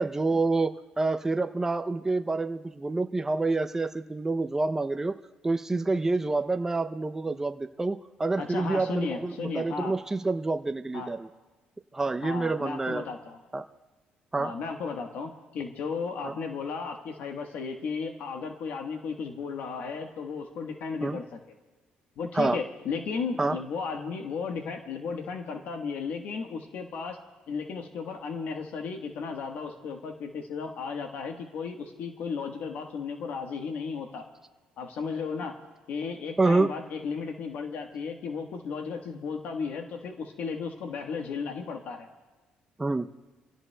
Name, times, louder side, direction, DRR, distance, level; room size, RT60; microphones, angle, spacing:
voice 1, 0.0-5.2 5.4-11.3 11.9-13.0 13.5-13.6 14.3-14.5 16.2-16.3 21.0-21.2 22.3-22.6 23.4-23.6 36.4-36.7 42.8-43.1, right 3 dB, 15° right, 8 dB, 0.5 m, -27 dB
voice 2, 8.4-9.9 10.9-11.1 12.2-13.4 14.4-21.4 22.2-27.2 27.5-34.3 34.8-35.6 35.9-42.1, left 5 dB, 70° left, 3 dB, 1.2 m, -35 dB
27.0 x 16.5 x 2.2 m, 1.2 s
cardioid pair, 110°, 3 cm